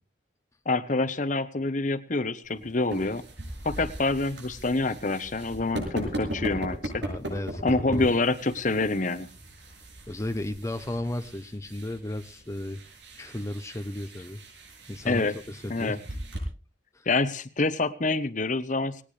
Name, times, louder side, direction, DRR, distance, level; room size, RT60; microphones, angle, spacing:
voice 1, 0.7-3.2 3.6-7.0 7.6-9.3 15.0-15.4 15.7-16.0 17.1-19.0, left 3 dB, 45° left, 12 dB, 1.0 m, -27 dB
sound 1, 2.4-16.4, right 1 dB, 80° right, 7.4 m, -39 dB
voice 2, 7.0-8.1 10.1-12.8 13.2-14.4 14.9-16.0 16.9-17.0, left 1 dB, 15° left, 8 dB, 0.8 m, -34 dB
19.5 x 19.0 x 3.3 m, 0.36 s
head